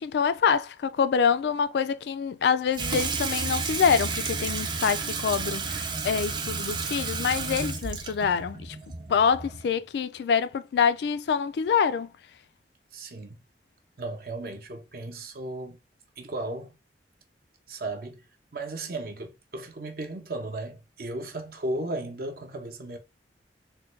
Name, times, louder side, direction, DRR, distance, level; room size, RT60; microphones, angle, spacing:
voice 1, 0.0-8.8 9.1-12.1, left 6 dB, 65° left, 0.3 m, -26 dB
Water tap faucet / Sink (filling or washing), 2.7-9.8, right 4 dB, 25° right, 0.4 m, -32 dB
voice 2, 12.9-13.4 14.0-15.8 16.2-16.7 17.7-18.3 18.5-23.0, right 2 dB, 55° right, 0.7 m, -35 dB
3.5 x 2.2 x 3.1 m
head